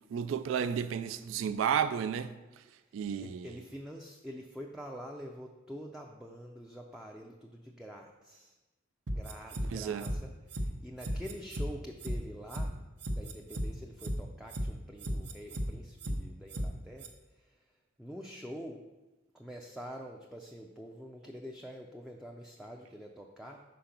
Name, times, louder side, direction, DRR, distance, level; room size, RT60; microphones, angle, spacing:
voice 1, 0.1-2.3 2.9-3.5 9.7-10.1, right 8 dB, 90° right, 0.3 m, -32 dB
voice 2, 3.1-8.5 9.1-12.7 13.1-17.6 18.0-18.9 19.3-23.6, equal, 5° right, 0.4 m, -46 dB
sound 1, 9.1-9.7 10.0-10.2 10.5-10.7 11.0-11.7 12.0-12.2 12.5-12.7 13.0-13.7 14.0-14.2 14.5-14.7 15.0-15.7 16.0-16.2 16.5-16.7 17.0-17.1, equal, 65° right, 0.8 m, -34 dB
5.1 x 4.8 x 5.8 m
head